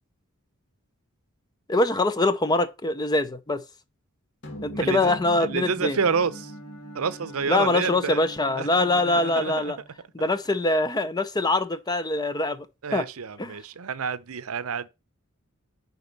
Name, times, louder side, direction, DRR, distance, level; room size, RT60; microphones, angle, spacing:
voice 1, 1.7-3.6 4.6-6.0 7.5-9.8 10.1-12.7 12.9-13.1 13.4-13.6, left 2 dB, 20° left, 0.6 m, -24 dB
sound 1, 4.4-9.0, left 1 dB, 55° left, 1.9 m, -41 dB
voice 2, 4.7-6.5 6.9-8.2 8.6-8.7 9.2-9.7 12.8-14.9, right 6 dB, 70° right, 0.6 m, -29 dB
Bowed string instrument, 5.9-10.5, right 2 dB, 75° left, 1.8 m, -45 dB
9.6 x 4.1 x 5.4 m
head